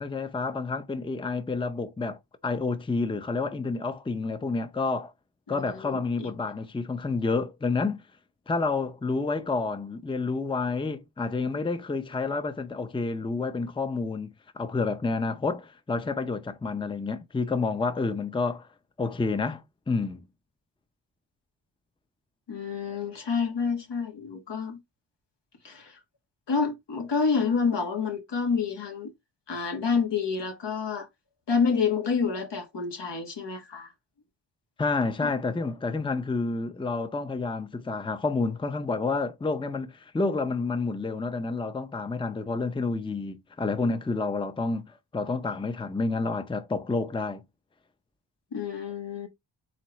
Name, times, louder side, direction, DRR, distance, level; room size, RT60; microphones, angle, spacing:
voice 1, 0.0-5.1 5.5-8.0 8.5-18.7 19.0-20.2 34.8-47.4, left 3 dB, 10° left, 0.6 m, -29 dB
voice 2, 5.5-6.3 22.5-24.8 25.6-25.9 26.5-29.1 29.5-31.1 31.5-33.9 35.2-35.3 48.5-49.3, left 5 dB, 75° left, 1.6 m, -28 dB
4.3 x 3.8 x 3.1 m
cardioid pair, 60°, 43 cm